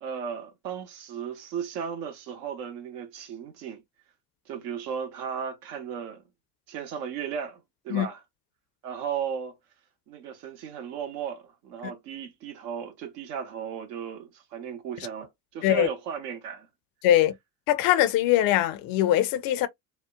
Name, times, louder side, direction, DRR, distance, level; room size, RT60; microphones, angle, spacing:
voice 1, 0.0-3.8 4.5-6.2 6.7-8.2 8.8-9.5 10.1-16.7, right 7 dB, 70° right, 0.9 m, -35 dB
voice 2, 17.0-17.3 17.7-19.7, left 12 dB, 45° left, 0.5 m, -22 dB
2.9 x 2.0 x 2.3 m
hypercardioid pair, 60°, 48 cm